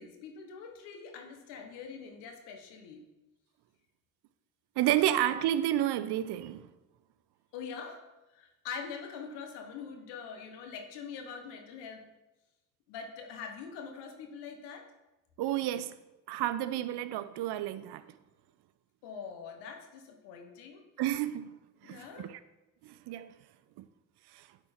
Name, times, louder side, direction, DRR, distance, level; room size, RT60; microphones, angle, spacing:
voice 1, 0.0-3.0 7.5-8.0 8.3-12.1 12.9-14.9 19.0-20.8 21.8-22.3, left 6 dB, 90° left, 1.1 m, -44 dB
voice 2, 4.8-6.6 15.4-15.9 16.3-18.0 21.0-21.5 21.8-22.4 22.8-23.3 23.8-23.9, right 12 dB, 70° right, 0.6 m, -30 dB
8.7 x 4.6 x 4.4 m
supercardioid pair, 60°, 41 cm